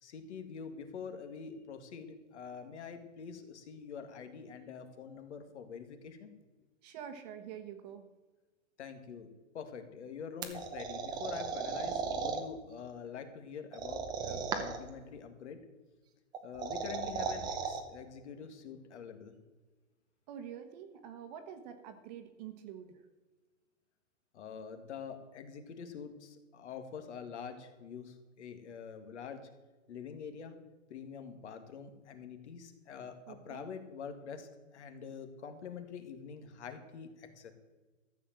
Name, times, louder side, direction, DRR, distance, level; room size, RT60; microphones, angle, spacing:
voice 1, 0.0-6.3 8.8-9.3 9.5-15.6 16.4-19.3 24.3-29.4 29.9-30.6 30.9-37.5, left 6 dB, 60° left, 7 dB, 2.1 m, -45 dB
voice 2, 6.8-8.1 20.3-23.0 33.3-33.7, right 9 dB, 30° right, 8 dB, 1.3 m, -46 dB
sound 1, 10.4-12.4 13.7-14.9 16.3-17.8, right 5 dB, 10° right, 0.7 m, -36 dB
13.5 x 7.3 x 7.5 m, 1.2 s
hypercardioid pair, 155°, 39 cm